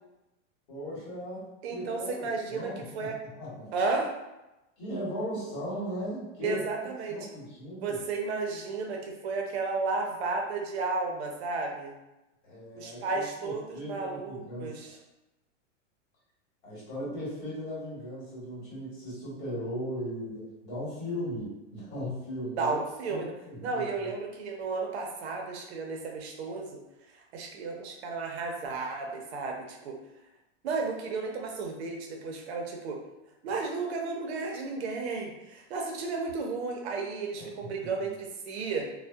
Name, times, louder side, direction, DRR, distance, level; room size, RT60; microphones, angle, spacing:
voice 1, 0.7-3.7 4.8-6.6 7.1-8.0 12.4-14.8 16.6-22.8 23.1-24.1 37.4-37.5 37.8-38.1, equal, 50° left, -6 dB, 1.5 m, -37 dB
voice 2, 1.6-3.2 3.7-4.1 6.4-7.2 7.8-11.9 12.7-15.0 22.6-23.3 23.6-26.8 27.3-30.0 30.6-33.0 33.4-38.9, right 4 dB, 60° right, 1 dB, 0.6 m, -33 dB
2.6 x 2.1 x 2.2 m, 0.97 s
supercardioid pair, 160°, 37 cm